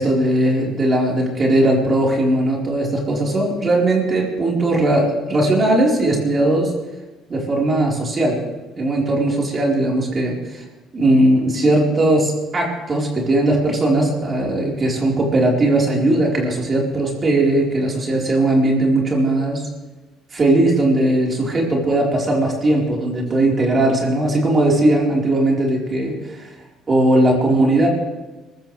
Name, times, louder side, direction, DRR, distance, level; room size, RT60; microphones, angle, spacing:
voice 1, 0.0-6.7 7.3-8.4 8.8-10.6 10.9-19.6 20.3-26.5 26.9-27.9, right 1 dB, 35° right, -2 dB, 4.5 m, -18 dB
23.0 x 14.5 x 3.4 m, 1.2 s
supercardioid pair, 75°, 0 cm